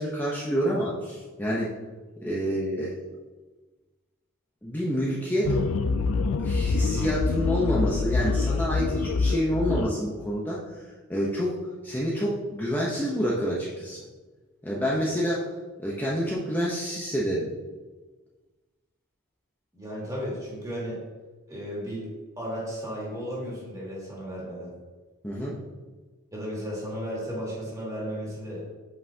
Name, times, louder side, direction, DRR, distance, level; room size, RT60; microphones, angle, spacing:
voice 1, 0.0-1.7 2.2-3.0 4.6-5.6 6.4-10.8 11.1-11.6 11.8-14.0 14.6-15.4 15.8-17.5 25.2-25.5, equal, 10° left, -6 dB, 0.7 m, -28 dB
sound 1, 5.4-9.9, left 4 dB, 65° left, 0.3 m, -25 dB
voice 2, 19.7-21.0 21.5-22.1 22.4-24.7 26.3-28.6, equal, 15° right, -5 dB, 2.1 m, -34 dB
7.8 x 5.5 x 2.8 m, 1.3 s
head